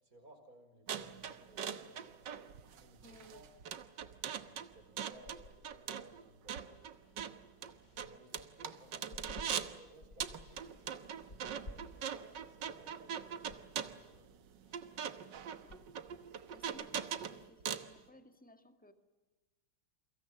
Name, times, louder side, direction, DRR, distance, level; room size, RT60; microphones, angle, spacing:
voice 1, 0.0-2.3 2.8-3.5 4.3-6.8 7.9-14.3, right 1 dB, 45° right, 6 dB, 5.8 m, -61 dB
sound 1, 0.9-9.8 10.2-17.9, right 8 dB, 65° right, 1.8 m, -42 dB
voice 2, 3.0-3.5 15.6-15.8 16.5-18.9, left 1 dB, 5° left, 7 dB, 1.7 m, -59 dB
sound 2, 5.1-9.5 9.9-16.7, left 2 dB, 35° left, 3.8 m, -57 dB
29.0 x 24.0 x 7.4 m, 1.2 s
omnidirectional pair, 2.1 m